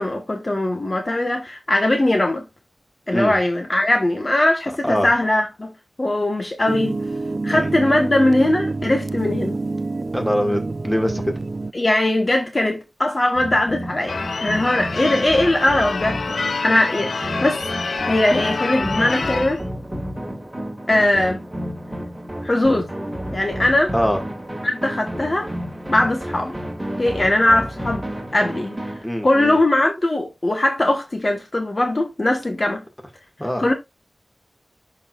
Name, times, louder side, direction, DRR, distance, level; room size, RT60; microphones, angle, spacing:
voice 1, 0.0-2.5 3.1-5.7 6.0-6.9 7.4-9.6 11.7-16.2 16.6-17.6 18.0-19.6 20.9-21.4 22.4-22.9 23.3-23.9 24.6-25.5 25.9-26.5 27.0-28.1 28.3-28.8 29.2-32.8 33.6-33.7, left 1 dB, 40° left, 1.3 m, -20 dB
sound 1, 6.7-11.7, right 3 dB, 50° right, 0.4 m, -27 dB
voice 2, 10.1-11.2 23.9-24.2 29.0-29.6 33.4-33.6, equal, 5° left, 1.9 m, -23 dB
sound 2, 13.3-29.0, equal, 15° right, 2.0 m, -31 dB
Church bell / Car / Alarm, 14.1-19.6, left 4 dB, 85° left, 0.5 m, -27 dB
11.5 x 4.7 x 2.4 m
wide cardioid pair, 85°, 0 cm